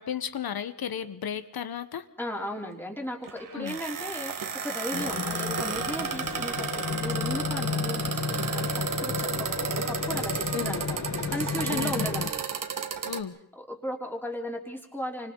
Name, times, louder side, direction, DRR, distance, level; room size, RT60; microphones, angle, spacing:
voice 1, 0.0-2.1 3.5-3.8 10.5-10.8 11.7-12.1 13.0-13.3, left 8 dB, 70° left, 12 dB, 1.3 m, -34 dB
voice 2, 2.2-11.0 11.3-12.4 13.6-15.3, equal, 5° left, -1 dB, 3.7 m, -36 dB
sound 1, 3.2-13.2, right 6 dB, 55° right, 1.8 m, -33 dB
sound 2, 4.9-12.3, left 5 dB, 50° left, 1.7 m, -32 dB
30.0 x 25.5 x 4.1 m, 0.73 s
wide cardioid pair, 165°, 38 cm